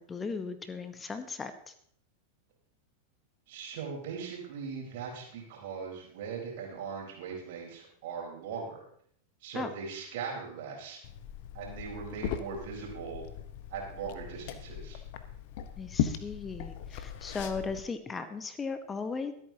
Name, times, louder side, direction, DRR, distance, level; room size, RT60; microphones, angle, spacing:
voice 1, 0.0-1.7 9.5-9.7 15.8-19.3, left 4 dB, 15° left, 10 dB, 1.0 m, -37 dB
voice 2, 3.5-8.8 9.4-11.0 11.5-13.2 13.7-15.0, right 6 dB, 50° right, -1 dB, 4.3 m, -39 dB
Liquid, 11.0-17.8, left 10 dB, 50° left, 1.1 m, -38 dB
24.0 x 8.9 x 2.9 m, 0.65 s
figure-of-eight pair, 90°, 0 cm